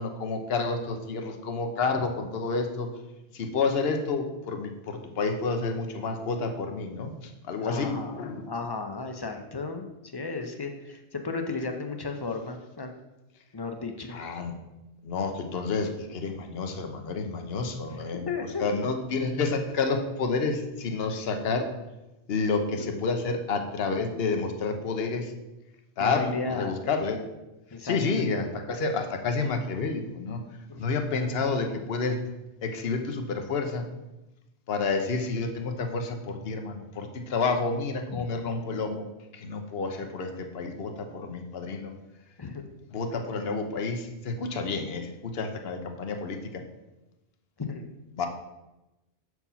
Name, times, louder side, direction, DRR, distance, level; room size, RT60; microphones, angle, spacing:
voice 1, 0.0-2.9 3.3-8.4 14.1-14.5 15.0-18.3 18.6-21.7 22.3-25.3 26.0-27.2 27.8-30.4 30.7-32.2 32.6-33.9 34.7-39.1 39.3-41.9 42.9-46.6 48.1-48.3, left 4 dB, 65° left, 5 dB, 1.0 m, -29 dB
voice 2, 7.6-9.9 10.1-12.9 13.5-14.2 17.9-18.6 22.8-22.9 26.0-26.8 27.7-28.2 30.7-31.0 38.1-38.2 42.4-42.7 47.6-47.9 48.2-48.3, left 4 dB, 25° left, 5 dB, 0.6 m, -34 dB
6.8 x 4.7 x 5.6 m, 0.99 s
omnidirectional pair, 1.1 m